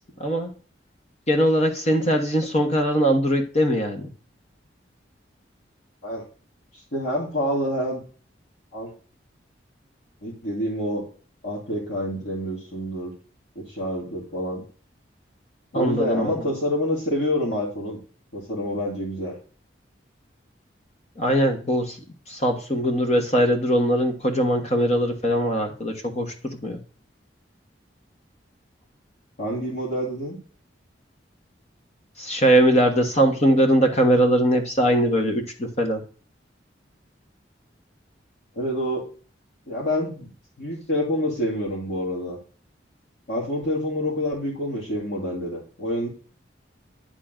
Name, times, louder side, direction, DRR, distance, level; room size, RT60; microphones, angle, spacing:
voice 1, 0.2-0.5 1.3-4.1 15.7-16.4 21.2-22.0 22.3-26.8 32.2-36.0, equal, 35° left, 4 dB, 1.2 m, -21 dB
voice 2, 6.9-8.0 8.7-8.9 10.2-11.0 11.4-13.1 13.6-14.6 15.7-18.0 18.3-19.4 29.4-30.4 38.6-39.0 39.7-40.3 40.6-42.4 43.3-46.1, equal, 65° left, -6 dB, 2.4 m, -27 dB
10.0 x 3.8 x 3.7 m, 0.39 s
head